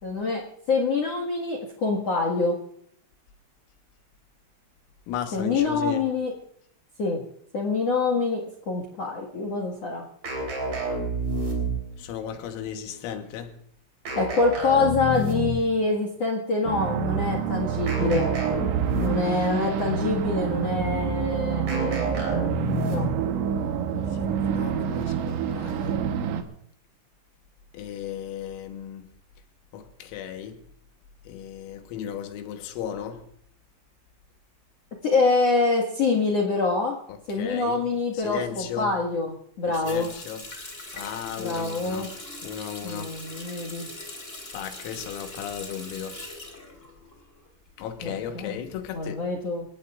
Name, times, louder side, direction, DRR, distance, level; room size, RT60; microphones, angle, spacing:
voice 1, 0.0-2.6 5.3-6.3 7.0-7.2 7.5-10.0 14.1-18.3 18.9-22.1 22.9-23.1 35.0-37.0 37.3-40.1 41.4-42.1 42.8-43.9 48.0-48.6 48.9-49.6, left 3 dB, 70° left, 1.5 m, -25 dB
voice 2, 5.1-6.0 12.0-13.5 24.2-26.0 27.7-29.0 29.7-30.6 31.3-33.2 37.1-37.8 38.1-38.9 39.7-40.4 40.9-42.1 42.4-43.1 44.5-46.2 47.8-49.2, left 9 dB, 85° left, 3.9 m, -35 dB
sound 1, 10.2-12.0 14.1-15.7 17.9-19.4 21.7-23.3, right 1 dB, 40° right, 4.6 m, -29 dB
sound 2, 16.6-26.4, right 8 dB, 75° right, 3.2 m, -27 dB
Water tap faucet, 39.7-47.5 47.8-48.8, left 2 dB, 30° left, 1.2 m, -41 dB
28.5 x 16.5 x 2.5 m
omnidirectional pair, 5.9 m